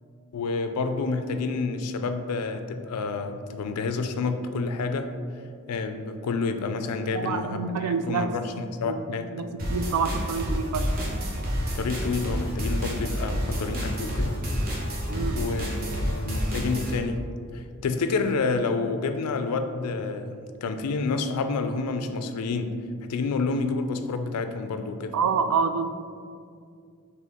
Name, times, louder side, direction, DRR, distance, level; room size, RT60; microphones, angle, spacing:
voice 1, 0.3-5.1 5.7-9.3 11.6-14.4 15.4-17.2 17.5-22.8 23.1-25.1, left 4 dB, 90° left, 8 dB, 0.4 m, -29 dB
voice 2, 7.1-8.3 8.8-10.9 15.1-15.4 25.1-25.9, right 5 dB, 80° right, 10 dB, 0.3 m, -27 dB
sound 1, 9.6-17.0, equal, 45° right, 0.7 m, -29 dB
4.1 x 3.2 x 3.6 m, 2.2 s
head